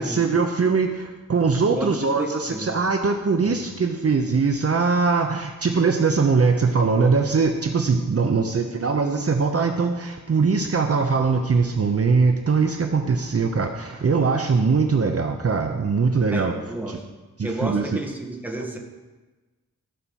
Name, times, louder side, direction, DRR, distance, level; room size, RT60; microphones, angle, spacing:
voice 1, 0.0-16.5 16.9-17.0 17.4-17.8, right 4 dB, 45° right, 5 dB, 0.8 m, -21 dB
voice 2, 1.7-2.7 3.4-3.6 8.3-8.4 16.3-17.0 17.4-18.8, right 1 dB, 5° right, 1 dB, 1.5 m, -31 dB
13.5 x 5.5 x 6.3 m, 1.2 s
wide cardioid pair, 115°, 33 cm